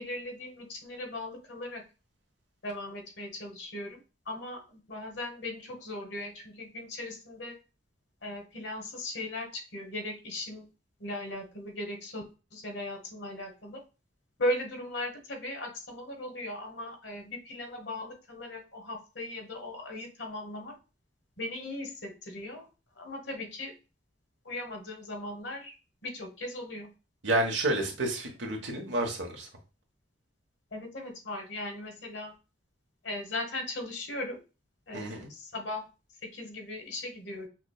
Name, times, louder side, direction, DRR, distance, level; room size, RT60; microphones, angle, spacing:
voice 1, 0.0-1.8 2.6-4.0 4.3-7.5 8.2-10.7 11.0-12.2 12.5-13.8 14.4-20.8 21.4-22.7 23.0-23.7 24.4-25.7 26.0-26.9 30.7-32.3 33.0-34.4 34.9-35.8 36.2-37.5, left 1 dB, 70° left, 3 dB, 1.2 m, -38 dB
voice 2, 27.2-29.5 34.9-35.3, right 1 dB, 80° right, 2 dB, 1.2 m, -30 dB
5.9 x 2.2 x 2.3 m, 0.31 s
head